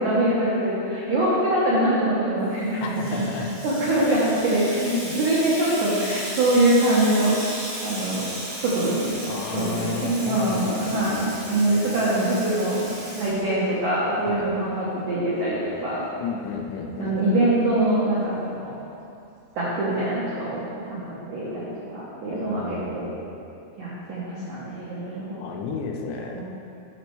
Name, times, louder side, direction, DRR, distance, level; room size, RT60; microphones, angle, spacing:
voice 1, 0.0-3.3 3.6-4.9 5.1-7.4 7.8-8.3 8.6-9.1 9.5-16.1 17.0-18.7 19.5-20.6 20.9-21.0 21.3-23.1 23.8-25.5 26.3-26.4, right 1 dB, 85° right, -8 dB, 1.7 m, -24 dB
Water tap faucet / Sink (filling or washing), 2.5-13.9, right 1 dB, 45° right, 2.9 m, -35 dB
voice 2, 2.8-3.6 3.8-4.2 4.7-5.2 9.3-11.2 11.7-12.3 14.3-14.5 16.2-17.2 22.3-23.2 25.4-26.4, left 5 dB, 80° left, 1 dB, 2.9 m, -32 dB
8.8 x 6.4 x 4.6 m, 2.7 s
omnidirectional pair, 5.3 m